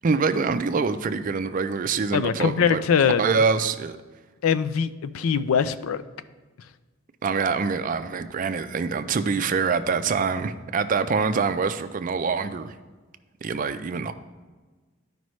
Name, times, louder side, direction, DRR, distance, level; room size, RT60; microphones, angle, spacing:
voice 1, 0.0-2.8 3.2-4.0 7.2-12.8 13.4-14.1, right 5 dB, 40° right, 10 dB, 0.4 m, -25 dB
voice 2, 2.1-3.2 4.4-6.0, left 7 dB, 85° left, 13 dB, 0.4 m, -22 dB
12.5 x 5.1 x 3.1 m, 1.3 s
head